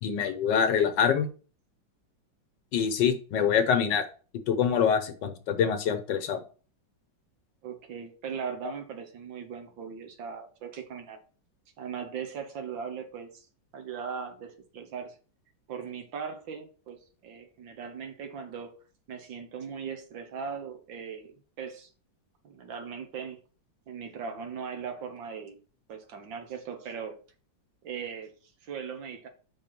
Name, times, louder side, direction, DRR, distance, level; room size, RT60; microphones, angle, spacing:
voice 1, 0.0-1.3 2.7-4.0 4.5-6.4, left 7 dB, 70° left, 9 dB, 1.5 m, -25 dB
voice 2, 7.6-11.2 11.8-13.5 13.7-15.2 15.7-18.8 19.1-21.9 22.4-23.4 23.9-25.6 25.9-27.2 27.8-28.3 28.6-29.3, right 6 dB, 75° right, 6 dB, 1.9 m, -39 dB
5.9 x 4.1 x 5.9 m, 0.37 s
omnidirectional pair, 2.1 m